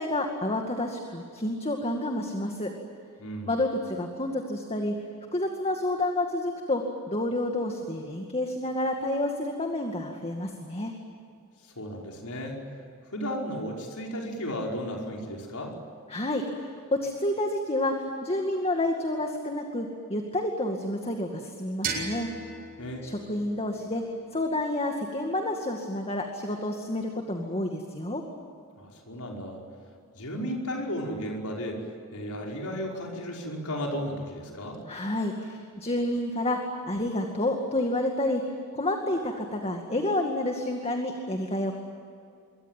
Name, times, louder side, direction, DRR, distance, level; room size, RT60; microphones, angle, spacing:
voice 1, 0.0-2.7 3.5-4.9 5.3-10.9 16.1-22.3 23.0-24.0 24.3-28.2 34.9-38.4 38.7-41.7, left 1 dB, 25° left, 3 dB, 2.2 m, -29 dB
voice 2, 3.2-3.6 11.6-12.6 13.1-15.8 22.8-23.2 28.8-29.6 30.1-34.8, equal, 80° left, 0 dB, 5.3 m, -34 dB
sound 1, 21.8-24.7, right 4 dB, 40° right, 7.8 m, -37 dB
26.5 x 23.5 x 9.2 m, 2.4 s
head